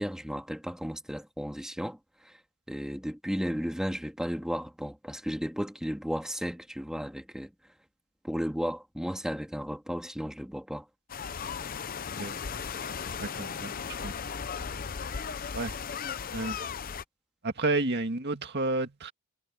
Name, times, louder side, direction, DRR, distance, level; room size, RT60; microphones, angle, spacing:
voice 1, 0.0-2.0 2.7-7.5 8.2-10.9, equal, 5° right, 1.8 m, -34 dB
sound 1, 11.1-17.0, left 6 dB, 45° left, 0.6 m, -36 dB
voice 2, 13.2-13.7 14.0-14.1 15.5-15.8 16.3-16.6 17.4-19.1, right 2 dB, 50° right, 2.1 m, -30 dB
head